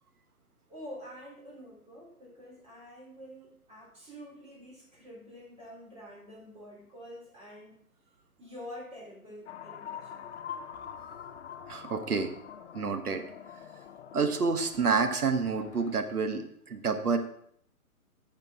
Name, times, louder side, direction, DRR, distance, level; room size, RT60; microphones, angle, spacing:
voice 1, 0.7-7.8 8.4-10.6, equal, 15° right, -5 dB, 3.5 m, -47 dB
sound 1, 9.5-16.0, left 8 dB, 50° left, 0.6 m, -45 dB
voice 2, 11.7-12.3 12.7-13.2 14.1-17.2, right 5 dB, 80° right, 7 dB, 1.4 m, -28 dB
11.5 x 6.7 x 3.7 m, 0.67 s
figure-of-eight pair, 135°, 45 cm